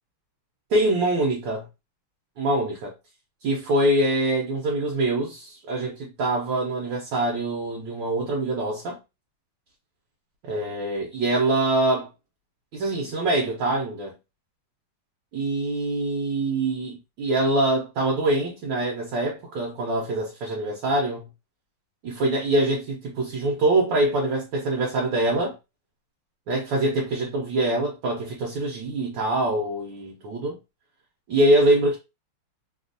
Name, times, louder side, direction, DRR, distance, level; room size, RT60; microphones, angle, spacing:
voice 1, 0.7-1.6 2.4-2.9 3.4-9.0 10.5-12.1 12.7-14.1 15.3-21.3 22.0-25.5 26.5-30.6 31.3-32.0, right 1 dB, 70° right, 1.3 m, -24 dB
3.4 x 2.3 x 2.5 m
omnidirectional pair, 2.2 m